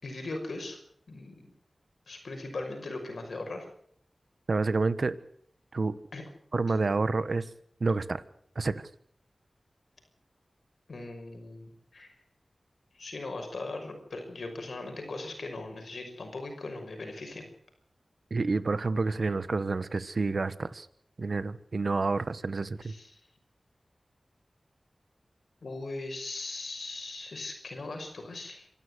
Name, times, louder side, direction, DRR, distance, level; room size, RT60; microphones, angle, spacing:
voice 1, 0.0-0.8 1.1-1.5 2.1-3.7 6.1-6.2 10.9-12.2 12.9-17.5 22.8-23.2 25.6-28.7, left 2 dB, 80° left, 5 dB, 5.8 m, -39 dB
voice 2, 4.5-5.2 5.7-6.0 6.5-7.4 7.8-8.2 8.5-8.9 18.3-20.9 21.2-22.9, right 3 dB, 65° right, 15 dB, 1.3 m, -29 dB
26.0 x 13.0 x 8.1 m, 0.64 s
cardioid pair, 45°, 0 cm